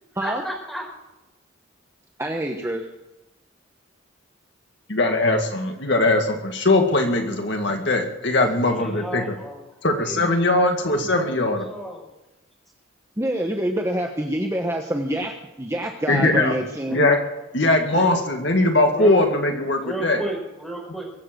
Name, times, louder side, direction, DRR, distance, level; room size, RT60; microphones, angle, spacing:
voice 1, 0.2-0.9 8.6-9.6 9.9-12.1 16.9-17.1 17.8-18.2 18.9-19.2 19.7-21.1, right 1 dB, ahead, -1 dB, 4.7 m, -33 dB
voice 2, 2.2-2.9 13.2-17.0, right 1 dB, 15° right, 2 dB, 1.1 m, -26 dB
voice 3, 4.9-9.3 9.8-11.6 16.1-16.5 16.9-17.2 17.5-20.2, left 2 dB, 55° left, 3 dB, 2.0 m, -20 dB
22.5 x 7.6 x 7.7 m, 1.0 s
head